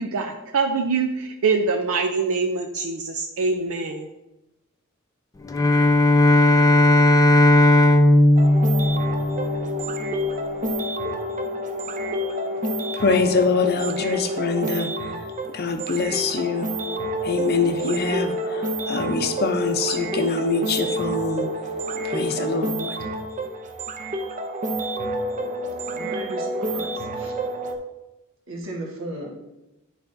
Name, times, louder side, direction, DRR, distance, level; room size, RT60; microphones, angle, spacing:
voice 1, 0.0-4.1, right 4 dB, 80° right, 3 dB, 0.5 m, -24 dB
Bowed string instrument, 5.4-9.9, left 1 dB, 15° left, 0.3 m, -16 dB
sound 1, 8.4-27.8, equal, 35° right, 0.6 m, -28 dB
voice 2, 12.9-15.2 15.5-16.7 17.2-21.5 22.0-23.0, left 4 dB, 50° left, 6 dB, 0.6 m, -24 dB
voice 3, 25.9-27.3 28.5-29.3, right 1 dB, 65° right, -2 dB, 1.4 m, -35 dB
10.5 x 4.1 x 2.6 m, 0.96 s
head